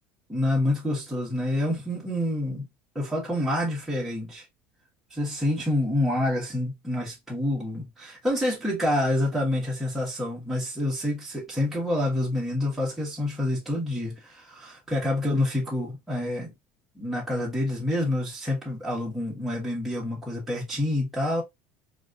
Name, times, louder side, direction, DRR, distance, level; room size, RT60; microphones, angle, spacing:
voice 1, 0.3-2.7 2.9-4.4 5.1-16.5 16.9-21.4, left 1 dB, 5° right, 1.1 m, -27 dB
3.8 x 2.4 x 2.4 m
cardioid pair, 150°, 5 cm